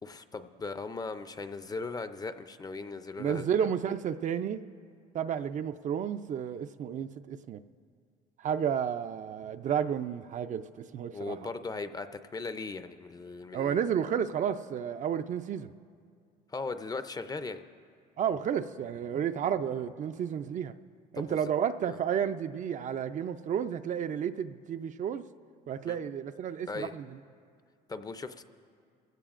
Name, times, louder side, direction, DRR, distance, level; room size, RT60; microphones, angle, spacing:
voice 1, 0.0-3.7 11.1-13.8 16.5-17.6 21.1-21.4 21.9-22.0 25.8-26.0 26.7-26.9 27.9-28.4, left 3 dB, 20° left, 11 dB, 0.5 m, -38 dB
voice 2, 3.2-4.6 5.1-7.6 8.4-11.5 13.5-15.7 18.2-20.7 21.1-25.2 25.7-27.2, right 8 dB, 50° right, 10 dB, 0.4 m, -31 dB
23.5 x 16.0 x 2.5 m, 2.2 s
cardioid pair, 110°, 17 cm